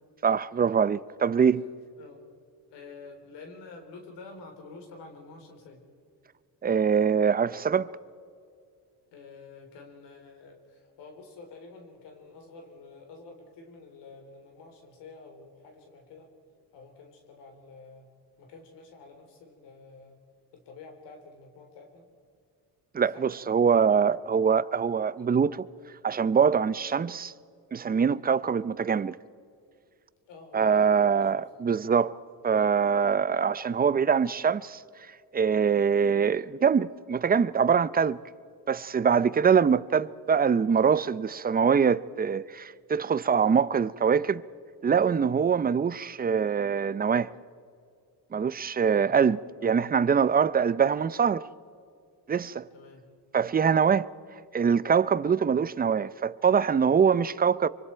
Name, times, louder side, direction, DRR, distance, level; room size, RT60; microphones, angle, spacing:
voice 1, 0.2-1.7 6.6-7.9 22.9-25.7 26.0-27.3 27.7-29.2 30.5-32.1 32.4-34.8 35.3-38.2 38.7-44.4 44.8-47.3 48.3-49.4 49.6-51.5 52.3-52.7 53.3-54.1 54.5-57.7, right 6 dB, 20° right, 0.5 m, -24 dB
voice 2, 2.7-5.8 9.1-16.3 16.7-18.1 18.4-20.2 20.5-22.1 23.1-23.3 23.5-24.0 30.3-31.4 33.0-33.2 39.1-39.3 48.8-49.2 49.6-49.9 52.7-53.0, left 3 dB, 90° left, 3.8 m, -49 dB
25.0 x 24.5 x 4.5 m
cardioid pair, 100°, 41 cm